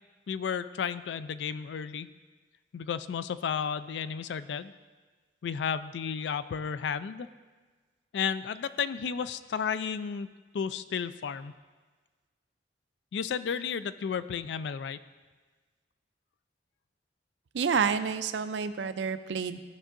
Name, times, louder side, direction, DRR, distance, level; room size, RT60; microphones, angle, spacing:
voice 1, 0.3-2.1 2.7-4.7 5.4-7.3 8.1-10.3 10.5-11.5 13.1-15.0, left 7 dB, 80° left, 14 dB, 0.3 m, -33 dB
voice 2, 17.5-19.6, right 6 dB, 80° right, 11 dB, 0.4 m, -29 dB
15.0 x 5.4 x 2.5 m, 1.4 s
head